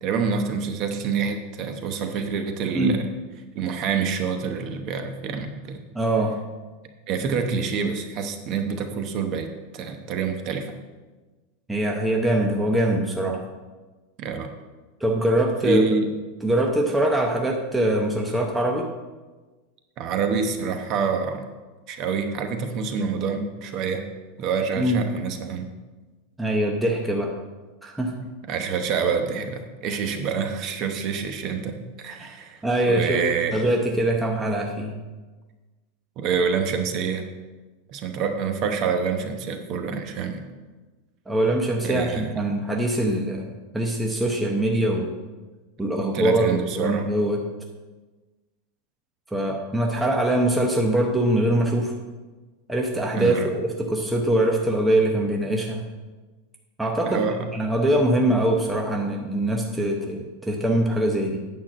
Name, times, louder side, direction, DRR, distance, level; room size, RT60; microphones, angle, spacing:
voice 1, 0.0-3.0 3.5-5.8 7.1-10.7 14.2-14.5 15.6-16.1 20.0-21.5 21.9-24.0 24.4-25.7 28.5-32.6 32.9-33.5 36.2-37.3 37.9-40.4 41.8-42.4 45.9-47.1 53.1-53.5 57.1-57.4, right 5 dB, 30° right, 6 dB, 0.9 m, -27 dB
voice 2, 5.9-6.4 11.7-13.4 15.0-15.9 16.4-18.9 24.8-25.0 26.4-27.3 27.8-28.3 32.2-32.3 32.6-33.2 33.5-34.9 41.3-45.1 45.8-47.4 49.3-51.9 52.7-55.8 56.8-57.2 57.5-61.4, right 1 dB, 5° right, 0 dB, 0.7 m, -23 dB
9.0 x 5.8 x 7.5 m, 1.3 s
supercardioid pair, 175°, 0 cm